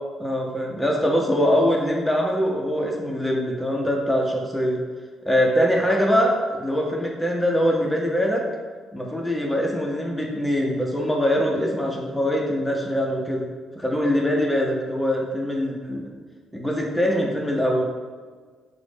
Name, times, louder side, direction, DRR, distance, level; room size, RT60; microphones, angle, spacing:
voice 1, 0.2-4.8 5.3-8.4 8.9-13.5 13.8-16.0 16.5-17.8, equal, 5° left, -2 dB, 0.5 m, -23 dB
3.7 x 2.0 x 3.4 m, 1.5 s
cardioid pair, 90°, 0 cm